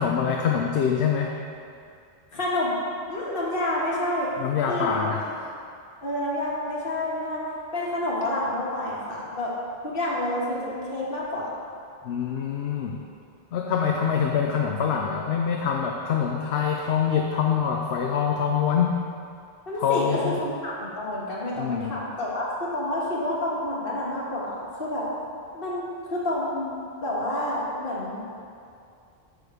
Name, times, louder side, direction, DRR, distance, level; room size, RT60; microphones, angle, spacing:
voice 1, 0.0-1.3 4.4-5.3 12.0-13.0 13.5-19.1 19.8-20.4 21.6-22.0, left 7 dB, 80° left, 1 dB, 0.9 m, -25 dB
voice 2, 2.3-2.8 3.1-4.3 4.7-5.1 6.0-7.4 7.7-9.5 9.8-11.5 19.7-25.1 25.5-28.2, left 1 dB, 60° left, -5 dB, 1.7 m, -29 dB
6.9 x 6.3 x 5.0 m, 2.4 s
omnidirectional pair, 1.1 m